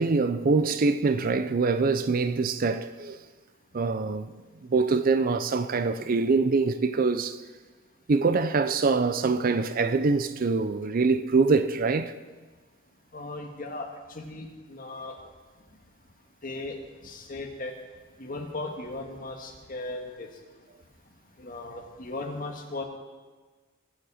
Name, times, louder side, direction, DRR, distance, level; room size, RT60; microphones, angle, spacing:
voice 1, 0.0-3.2 3.7-4.3 4.7-7.4 8.1-12.1, right 4 dB, 45° right, 0.5 m, -24 dB
voice 2, 13.1-13.9 14.1-15.1 16.4-16.7 17.0-17.7 18.2-20.3 21.4-22.8, left 2 dB, 45° left, 1.7 m, -37 dB
20.5 x 7.5 x 5.0 m
head